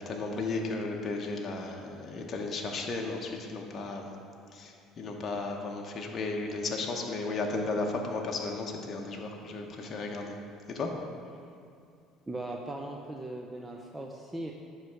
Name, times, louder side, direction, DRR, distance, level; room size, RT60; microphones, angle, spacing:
voice 1, 0.0-4.1 4.5-10.3 10.7-10.9, left 3 dB, 40° left, 1 dB, 0.9 m, -34 dB
voice 2, 12.3-14.5, right 2 dB, 15° right, 0 dB, 0.5 m, -38 dB
9.6 x 3.2 x 6.2 m, 2.4 s
supercardioid pair, 100°, 0 cm